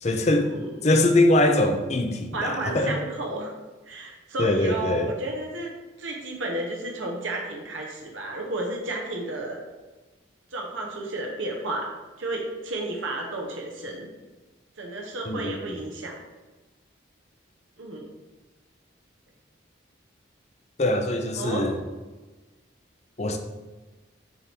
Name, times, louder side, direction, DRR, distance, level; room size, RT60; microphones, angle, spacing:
voice 1, 0.0-0.5 0.8-3.0 4.4-5.1 15.3-15.8 20.8-21.8 23.2-23.4, left 1 dB, 35° left, 6 dB, 0.6 m, -22 dB
voice 2, 2.3-3.5 3.9-5.7 6.0-9.6 10.5-11.9 12.2-14.1 14.8-16.2 17.8-18.0 21.4-21.7, right 2 dB, 80° right, 0 dB, 1.0 m, -32 dB
7.0 x 3.5 x 4.5 m, 1.2 s
head